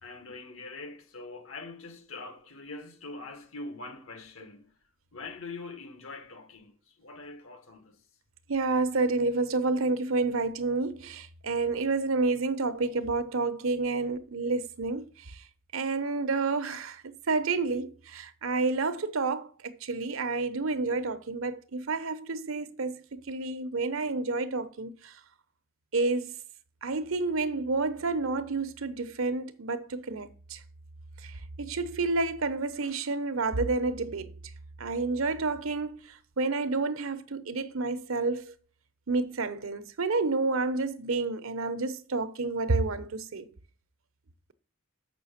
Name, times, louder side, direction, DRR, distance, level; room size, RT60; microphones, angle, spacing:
voice 1, 0.0-4.7 5.1-8.0, left 3 dB, 75° left, 1.6 m, -43 dB
voice 2, 8.5-15.4 15.7-25.1 25.9-26.4 26.8-30.6 31.2-34.3 34.8-38.5 39.1-43.5, right 3 dB, 75° right, 0.9 m, -29 dB
7.3 x 6.1 x 5.8 m
head